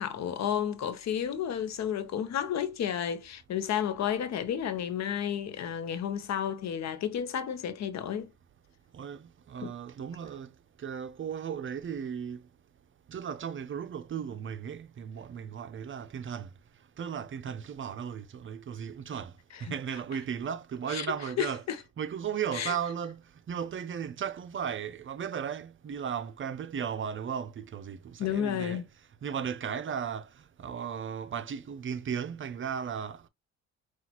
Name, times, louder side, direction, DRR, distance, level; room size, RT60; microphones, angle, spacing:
voice 1, 0.0-8.3 9.6-9.7 20.9-21.1 21.4-21.8 22.5-22.7 28.2-28.8, left 9 dB, 60° left, 0.8 m, -31 dB
voice 2, 8.9-10.5 10.8-12.4 13.1-16.5 17.0-19.3 19.6-21.6 22.0-28.8 29.2-33.3, right 7 dB, 40° right, 0.6 m, -36 dB
6.0 x 2.4 x 2.9 m
cardioid pair, 90°, 30 cm